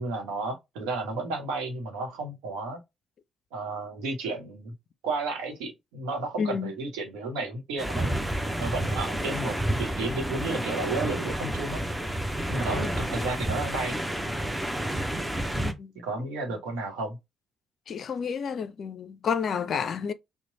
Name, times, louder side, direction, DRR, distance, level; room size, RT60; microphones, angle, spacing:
voice 1, 0.0-2.8 3.5-4.7 5.0-8.2 8.6-11.8 12.5-14.0 15.9-17.2, right 3 dB, 75° right, 0.9 m, -32 dB
voice 2, 6.4-6.7 12.8-12.9 15.5-15.9 17.9-20.1, left 6 dB, 55° left, 0.4 m, -30 dB
sound 1, 7.8-15.7, right 1 dB, 10° right, 0.7 m, -30 dB
3.0 x 2.1 x 3.8 m
hypercardioid pair, 45°, 0 cm